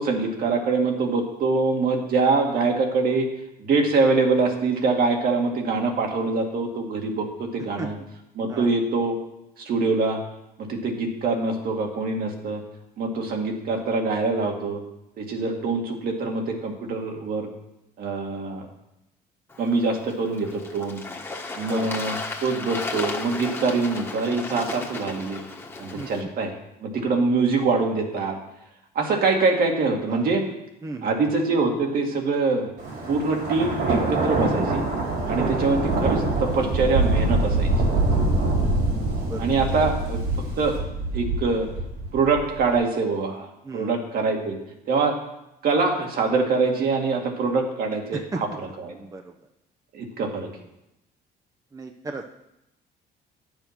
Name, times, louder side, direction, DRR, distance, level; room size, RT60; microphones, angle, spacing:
voice 1, 0.0-3.3 3.6-8.0 8.4-9.1 9.6-10.2 10.6-12.6 13.0-14.8 15.2-17.5 18.0-18.7 19.6-21.0 21.5-22.2 22.4-25.4 25.8-26.5 26.8-28.4 29.0-30.4 31.0-32.7 33.1-34.8 35.3-37.7 39.4-40.2 40.6-40.7 41.1-41.7 42.1-43.5 43.7-44.6 44.9-45.2 45.6-48.5 48.8-49.0 49.9-50.5, right 3 dB, 60° right, 2 dB, 2.0 m, -24 dB
voice 2, 7.8-8.1 8.5-8.7 21.7-21.9 25.9-26.1 30.1-30.3 30.8-31.2 35.4-35.6 39.2-39.5 43.6-44.0 48.1-48.4 48.9-49.3 51.7-52.2, right 2 dB, 20° right, 5 dB, 0.7 m, -34 dB
Bird / Water, 19.5-26.2, left 3 dB, 15° left, 1.4 m, -34 dB
Thunder, 32.8-42.6, right 2 dB, 85° right, 4.5 m, -24 dB
10.0 x 7.1 x 5.8 m, 0.88 s
cardioid pair, 110°, 17 cm